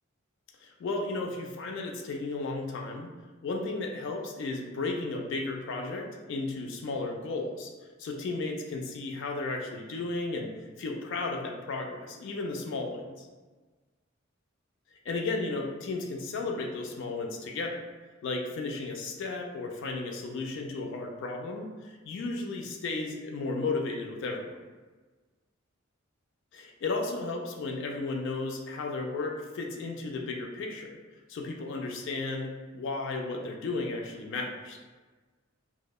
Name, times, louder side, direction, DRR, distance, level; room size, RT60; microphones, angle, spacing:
voice 1, 0.6-3.1 3.4-7.7 8.0-10.5 10.8-13.3 15.1-17.8 18.2-24.6 26.5-31.0 31.3-34.8, left 3 dB, 60° left, 2 dB, 0.3 m, -34 dB
2.8 x 2.0 x 2.2 m, 1.3 s
head